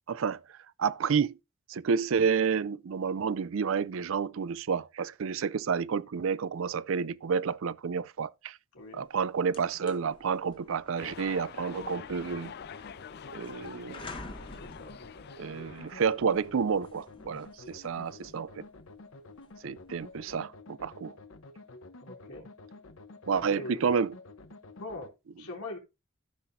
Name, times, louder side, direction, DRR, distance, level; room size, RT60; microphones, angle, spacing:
voice 1, 0.1-0.4 0.8-1.4 1.7-8.6 8.9-12.5 13.3-14.1 15.4-18.6 19.6-21.1 23.3-24.1, right 6 dB, 60° right, 0.4 m, -30 dB
voice 2, 8.7-9.1 14.6-15.3 22.0-22.5 23.3-23.8 24.8-25.8, left 2 dB, 85° left, 3.5 m, -42 dB
sound 1, 9.0-9.1 9.4-20.3, left 2 dB, 25° left, 1.3 m, -51 dB
sound 2, 11.0-16.2, left 7 dB, 45° left, 0.4 m, -46 dB
sound 3, 11.6-25.1, left 2 dB, 65° left, 0.9 m, -50 dB
14.0 x 5.9 x 2.6 m
head